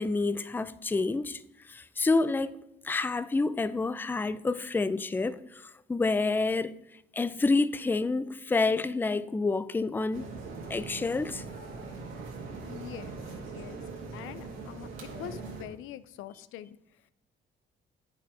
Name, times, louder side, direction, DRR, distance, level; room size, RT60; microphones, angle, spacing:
voice 1, 0.0-1.4 1.7-2.6 2.8-6.7 7.1-10.3 10.7-11.4, left 3 dB, 10° left, 0.4 m, -28 dB
sound 1, 10.1-15.6, right 4 dB, 90° right, 1.9 m, -41 dB
voice 2, 12.6-13.2 13.5-13.8 14.1-16.8, left 12 dB, 85° left, 0.5 m, -44 dB
8.8 x 5.6 x 4.9 m
cardioid pair, 90°, 20 cm